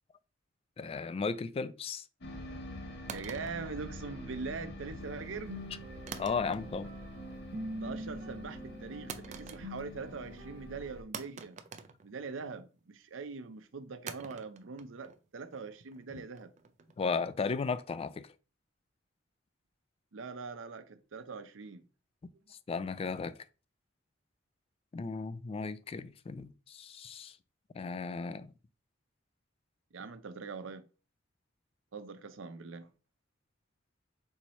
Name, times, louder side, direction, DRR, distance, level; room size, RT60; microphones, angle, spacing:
voice 1, 0.8-2.0 6.2-6.9 17.0-18.3 22.7-23.4 24.9-27.4 27.8-28.5, left 4 dB, 30° left, 0.3 m, -35 dB
sound 1, 2.2-11.0, left 1 dB, 60° left, 0.9 m, -46 dB
sound 2, 3.1-4.5 6.1-6.9 7.2-7.7 9.1-10.0 10.3-10.4 11.1-12.7 14.1-17.1, right 6 dB, 40° right, 0.4 m, -47 dB
voice 2, 3.1-5.6 7.8-11.6 12.0-16.5 20.1-21.8 29.9-30.9 31.9-32.9, right 4 dB, 90° right, 0.6 m, -42 dB
sound 3, 5.0-11.0, equal, 65° right, 1.0 m, -45 dB
4.6 x 2.8 x 4.1 m
head